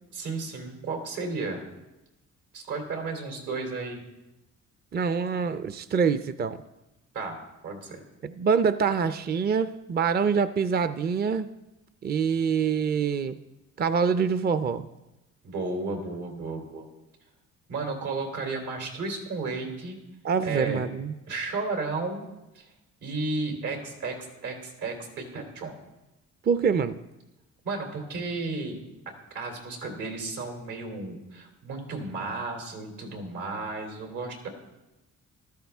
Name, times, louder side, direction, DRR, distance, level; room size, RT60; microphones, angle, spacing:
voice 1, 0.1-1.6 2.5-4.0 7.1-8.0 15.4-16.9 17.7-20.0 20.4-20.8 21.3-22.3 22.5-22.7 23.0-25.7 27.6-28.8 29.3-34.5, right 3 dB, 80° right, 2 dB, 3.2 m, -33 dB
voice 2, 4.9-6.6 8.2-11.5 12.0-13.4 13.8-14.9 20.2-21.1 26.4-27.0, right 6 dB, 35° right, 12 dB, 0.5 m, -25 dB
14.0 x 13.0 x 3.5 m, 0.99 s
cardioid pair, 90°, 30 cm